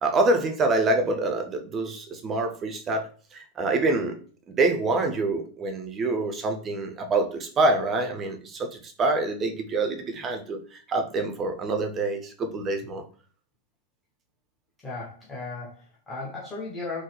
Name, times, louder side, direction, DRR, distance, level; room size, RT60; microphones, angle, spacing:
voice 1, 0.0-4.2 4.5-13.0, right 2 dB, 25° right, 0.6 m, -26 dB
voice 2, 14.8-17.0, left 3 dB, 15° left, 0.9 m, -36 dB
3.7 x 2.3 x 3.0 m
figure-of-eight pair, 90°, 0 cm